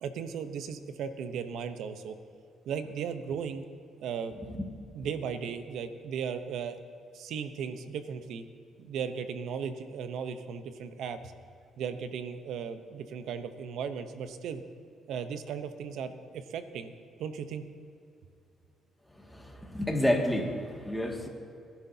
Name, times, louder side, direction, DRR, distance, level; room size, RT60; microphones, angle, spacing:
voice 1, 0.0-2.1 2.7-3.6 4.0-4.4 4.9-6.8 7.1-8.4 8.8-11.3 11.8-14.6 15.1-16.9 17.2-17.6, right 7 dB, 80° right, 9 dB, 0.8 m, -36 dB
voice 2, 19.2-21.3, left 1 dB, 5° left, 0 dB, 2.1 m, -30 dB
20.5 x 11.5 x 2.8 m, 2.5 s
cardioid pair, 90°, 0 cm